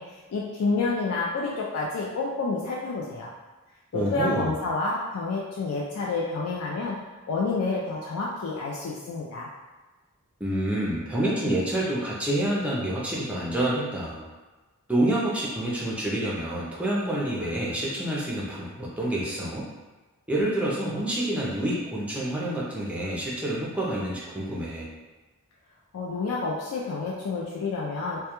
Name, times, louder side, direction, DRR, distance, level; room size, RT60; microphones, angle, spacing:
voice 1, 0.0-3.3 3.9-7.0 7.3-9.5 25.9-28.2, left 3 dB, 75° left, -4 dB, 0.3 m, -29 dB
voice 2, 3.9-4.5 10.4-14.2 14.9-19.7 20.3-24.9, right 1 dB, 5° right, -5 dB, 0.4 m, -28 dB
2.2 x 2.1 x 2.9 m, 1.2 s
head